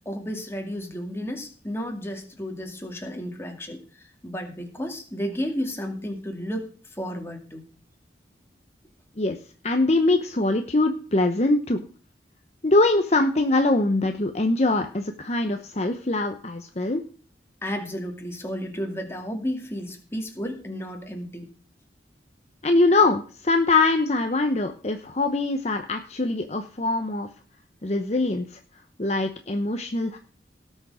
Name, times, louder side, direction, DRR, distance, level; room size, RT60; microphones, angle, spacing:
voice 1, 0.0-6.7 7.0-7.6 17.6-21.5, equal, 15° left, 3 dB, 2.4 m, -32 dB
voice 2, 9.6-11.9 12.6-17.0 22.6-27.3 27.8-28.6 29.0-30.2, left 2 dB, 40° left, 5 dB, 0.9 m, -23 dB
18.0 x 6.5 x 4.9 m, 0.40 s
head